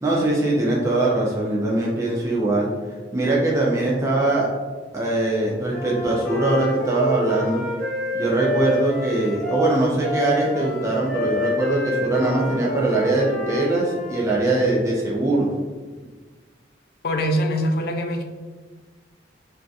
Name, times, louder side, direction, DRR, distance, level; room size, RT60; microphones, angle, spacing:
voice 1, 0.0-2.7 3.1-4.5 4.9-7.6 8.1-15.5, right 2 dB, 15° right, -4 dB, 0.4 m, -21 dB
Wind instrument woodwind instrument, 5.7-14.2, left 1 dB, 5° left, 0.9 m, -28 dB
voice 2, 17.0-18.2, equal, 55° left, 4 dB, 0.4 m, -23 dB
3.7 x 2.6 x 2.3 m, 1.4 s
head